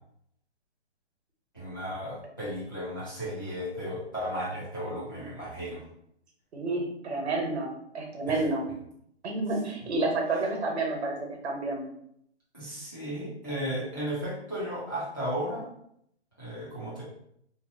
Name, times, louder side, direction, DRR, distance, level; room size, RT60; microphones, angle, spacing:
voice 1, 1.5-5.8 8.3-8.4 12.5-15.6 16.4-17.0, equal, 20° left, -9 dB, 0.3 m, -34 dB
voice 2, 6.5-8.7 9.2-11.8, right 2 dB, 70° right, 1 dB, 0.9 m, -30 dB
2.6 x 2.3 x 2.5 m, 0.72 s
hypercardioid pair, 155°, 34 cm